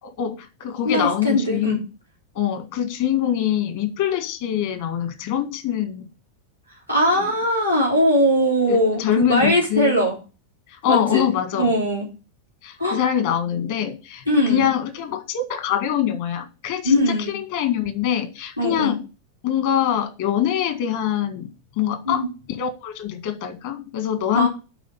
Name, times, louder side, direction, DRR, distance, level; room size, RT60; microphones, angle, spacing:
voice 1, 0.0-1.8 2.4-6.1 7.2-7.4 8.7-10.1 10.7-11.7 12.6-19.0 19.4-21.5 21.8-22.2 22.6-24.5, left 10 dB, 50° left, 9 dB, 1.8 m, -24 dB
voice 2, 0.8-1.8 6.9-10.2 10.9-11.3 11.5-12.1 12.8-13.0 14.3-14.7 16.8-17.3 18.6-18.9 22.0-22.3 24.3-24.5, equal, 90° left, -2 dB, 3.2 m, -20 dB
11.0 x 4.2 x 6.9 m, 0.32 s
figure-of-eight pair, 90°, 0 cm